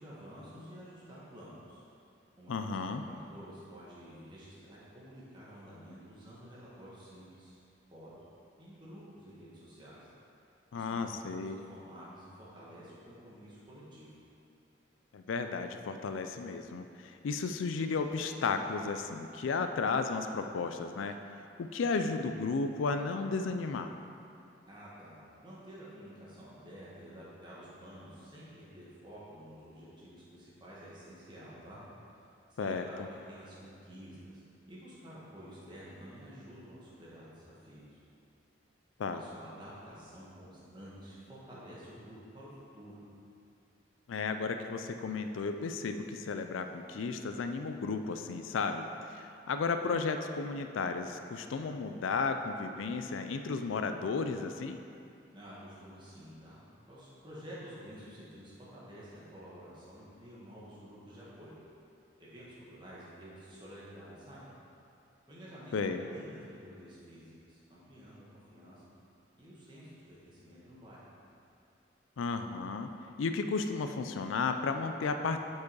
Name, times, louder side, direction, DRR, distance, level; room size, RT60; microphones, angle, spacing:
voice 1, 0.0-1.8 2.4-7.6 7.9-8.1 8.6-10.0 10.7-14.2 24.7-31.8 32.2-32.3 32.5-38.0 39.0-43.0 55.3-56.6 56.9-61.5 62.2-64.4 65.3-68.2 68.5-68.8 69.4-71.0, equal, 25° right, -8 dB, 1.6 m, -50 dB
voice 2, 2.5-3.0 10.7-11.6 15.1-21.1 21.6-23.9 32.6-32.8 39.0-39.2 44.1-48.8 49.1-54.8 65.7-66.0 72.2-72.9 73.2-75.4, left 4 dB, 85° left, 7 dB, 0.4 m, -33 dB
7.3 x 4.7 x 4.7 m, 2.6 s
head